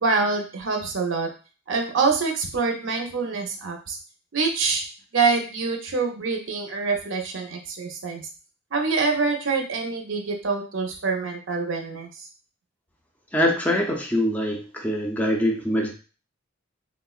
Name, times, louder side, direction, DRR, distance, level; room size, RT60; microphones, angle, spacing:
voice 1, 0.0-1.3 1.7-4.0 4.3-4.8 5.1-8.2 8.7-12.2, right 4 dB, 70° right, 3 dB, 0.6 m, -25 dB
voice 2, 13.3-15.9, equal, 10° left, 0 dB, 0.4 m, -23 dB
3.4 x 2.1 x 2.3 m, 0.35 s
head